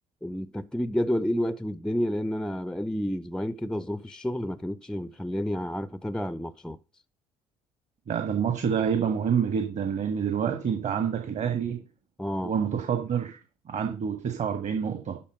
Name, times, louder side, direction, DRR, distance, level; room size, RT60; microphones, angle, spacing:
voice 1, 0.2-6.8 12.2-12.5, equal, 5° left, 0.5 m, -30 dB
voice 2, 8.1-11.8 12.4-13.4 13.6-15.2, right 7 dB, 40° right, 1.7 m, -27 dB
12.0 x 4.4 x 6.4 m
figure-of-eight pair, 55°, 18 cm